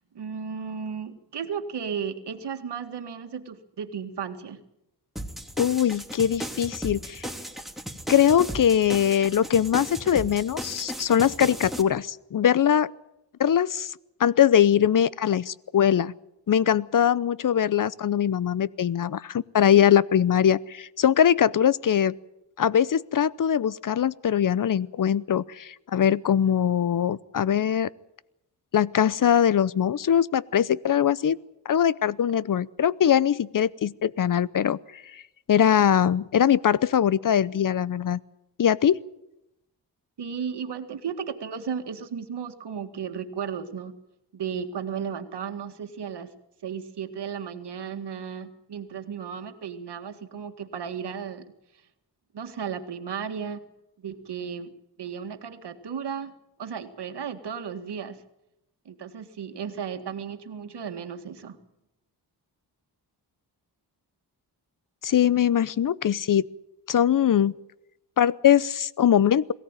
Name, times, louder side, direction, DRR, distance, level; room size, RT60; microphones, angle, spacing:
voice 1, 0.1-4.6 40.2-44.0 44.3-46.3 46.6-51.5 52.3-53.6 54.0-56.3 56.6-58.2 58.9-61.6, right 7 dB, 75° right, 7 dB, 2.0 m, -34 dB
sound 1, 5.2-11.8, equal, ahead, 2.6 m, -36 dB
voice 2, 5.6-7.2 8.1-12.9 13.4-13.9 14.2-16.1 16.5-22.1 22.6-27.9 28.7-31.4 31.6-34.8 35.1-35.2 35.5-38.2 38.6-39.0 65.0-66.5 66.9-67.5 68.2-69.5, left 9 dB, 50° left, 20 dB, 0.7 m, -22 dB
22.5 x 17.0 x 9.0 m, 0.87 s
cardioid pair, 75°, 41 cm